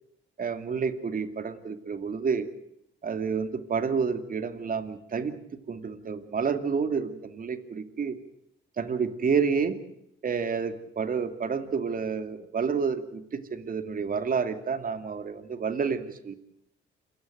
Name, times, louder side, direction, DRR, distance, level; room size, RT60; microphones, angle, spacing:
voice 1, 0.4-2.5 3.0-8.2 8.8-9.8 10.2-16.3, right 5 dB, 45° right, 9 dB, 2.5 m, -29 dB
27.5 x 16.5 x 7.9 m, 0.79 s
cardioid pair, 90°, 20 cm